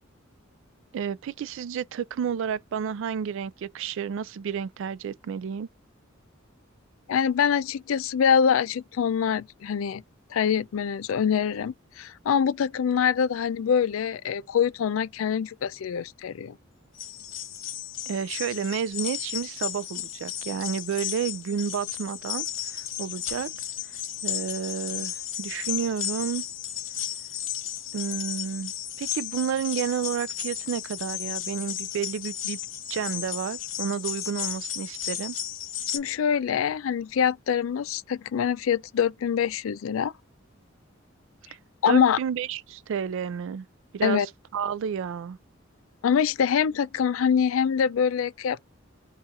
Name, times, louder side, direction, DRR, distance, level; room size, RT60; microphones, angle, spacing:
voice 1, 0.9-5.7 18.1-22.5 22.7-23.5 24.2-26.4 27.9-28.7 29.0-32.6 32.9-35.4 41.9-43.7 43.9-44.2 44.5-45.4, right 7 dB, 65° right, 0.3 m, -31 dB
voice 2, 7.1-10.0 10.3-16.6 35.9-40.1 41.8-42.2 44.0-44.3 46.0-48.6, left 7 dB, 85° left, 0.4 m, -24 dB
sound 1, 17.0-36.0, left 11 dB, 70° left, 1.0 m, -34 dB
4.1 x 2.4 x 3.6 m
head